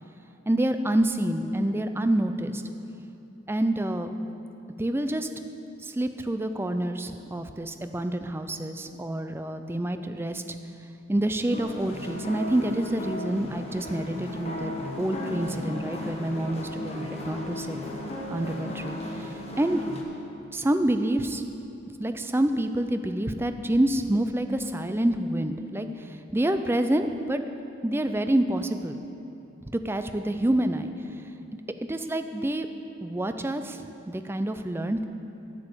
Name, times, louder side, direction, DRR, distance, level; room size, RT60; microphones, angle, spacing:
voice 1, 0.5-2.6 3.5-4.1 4.8-5.3 5.8-10.4 11.1-17.8 18.3-19.3 19.6-19.8 20.5-21.4 22.0-27.4 27.8-29.0 29.7-30.9 31.9-32.7 33.0-35.0, right 1 dB, 10° right, 8 dB, 0.4 m, -27 dB
sound 1, 11.5-20.0, left 1 dB, 30° left, 1.2 m, -35 dB
9.1 x 8.1 x 6.8 m, 2.9 s
head